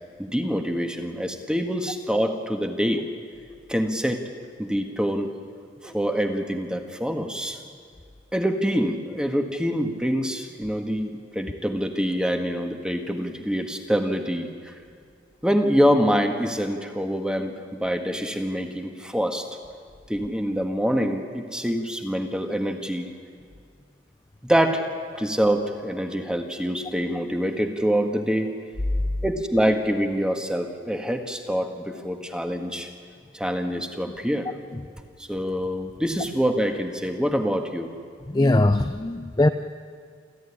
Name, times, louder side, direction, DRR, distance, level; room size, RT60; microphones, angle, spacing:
voice 1, 0.2-3.0 3.7-4.2 4.6-5.3 5.8-7.6 8.3-14.7 15.4-19.5 20.1-23.1 24.4-24.9 25.1-28.5 29.2-32.9 33.3-34.5 35.2-37.9, equal, 5° right, 5 dB, 1.6 m, -25 dB
voice 2, 38.3-39.5, left 2 dB, 20° left, 8 dB, 0.5 m, -20 dB
27.5 x 14.0 x 9.9 m, 2.1 s
head